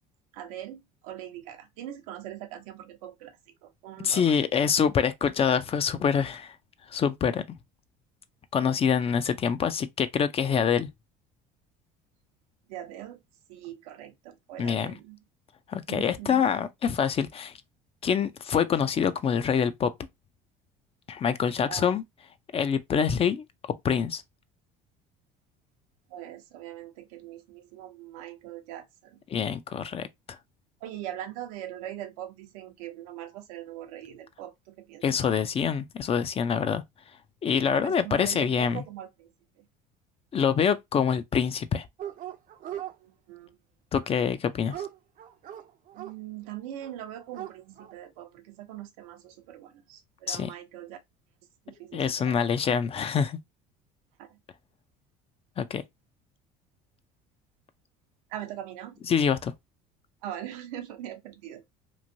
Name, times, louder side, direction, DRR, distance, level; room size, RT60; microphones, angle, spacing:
voice 1, 0.3-3.3 3.6-4.4 4.6-4.7 12.7-13.2 13.5-15.2 15.9-16.5 21.7-21.9 26.1-29.2 30.8-35.0 37.7-39.3 39.6-39.7 43.0-43.6 45.9-51.0 51.7-52.4 54.2-54.4 58.3-59.0 60.2-61.6, right 12 dB, 85° right, 0.7 m, -41 dB
voice 2, 4.0-6.5 6.9-7.4 8.5-10.9 14.6-14.9 15.7-17.5 18.0-19.9 21.1-22.0 22.5-23.4 23.8-24.2 29.3-30.4 35.0-36.8 37.4-38.8 40.3-41.9 43.9-44.8 50.3-50.5 51.9-53.4 55.6-55.8 59.1-59.5, left 7 dB, 30° left, 0.4 m, -25 dB
Dog, 42.0-42.9 44.0-46.1 46.8-46.9 47.2-47.9, right 11 dB, 50° right, 0.5 m, -39 dB
3.1 x 2.6 x 2.6 m
supercardioid pair, 95°, 18 cm